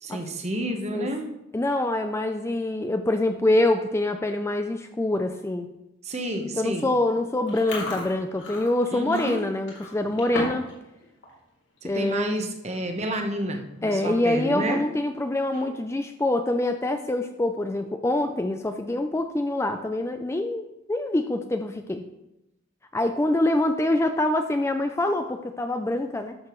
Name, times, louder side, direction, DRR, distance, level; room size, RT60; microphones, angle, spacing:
voice 1, 0.0-1.3 6.0-6.9 8.9-9.4 11.8-14.8, right 1 dB, 30° right, 4 dB, 1.0 m, -30 dB
voice 2, 1.5-5.7 6.6-10.7 11.8-12.5 13.8-22.1 22.9-26.4, left 1 dB, 15° left, 7 dB, 0.3 m, -25 dB
Chewing mastication, 7.5-10.7 11.0-11.3 11.8-12.0 12.8-12.9 13.1-13.4 13.8-13.9 15.4-16.0, left 2 dB, 60° left, 2.9 m, -35 dB
12.5 x 6.6 x 3.1 m, 0.90 s
head